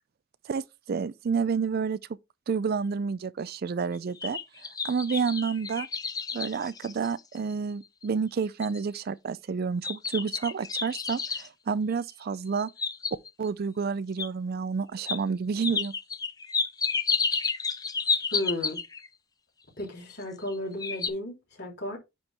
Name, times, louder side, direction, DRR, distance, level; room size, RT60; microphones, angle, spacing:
voice 1, 0.5-2.0 2.5-4.4 4.8-5.9 6.3-12.7 13.4-15.9, right 5 dB, 45° right, 0.4 m, -29 dB
sound 1, 3.9-7.5 8.0-8.1 8.6-9.0 9.8-11.5 12.5-13.5 14.2-14.3 15.0-15.2 15.6-19.1 20.1-20.5 20.8-21.1, left 5 dB, 20° left, 0.5 m, -31 dB
voice 2, 18.3-18.8 19.8-22.0, left 1 dB, 50° left, 3.2 m, -34 dB
9.7 x 4.4 x 3.4 m
head